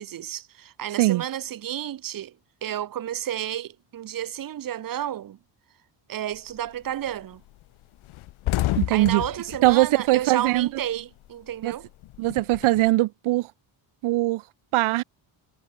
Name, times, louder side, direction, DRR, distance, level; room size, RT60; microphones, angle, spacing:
voice 1, 0.0-2.4 2.6-5.4 6.1-7.4 8.9-11.9, right 11 dB, 45° right, 2.0 m, -31 dB
sound 1, 6.3-6.7 7.1-7.2 7.5-7.6 7.9-10.9 11.2-12.9, left 16 dB, 80° left, 3.2 m, -30 dB
voice 2, 8.8-9.2 9.6-10.7 11.6-11.7 12.2-13.5 14.0-14.4 14.7-15.0, right 18 dB, 80° right, 1.6 m, -21 dB
cardioid pair, 170°, 48 cm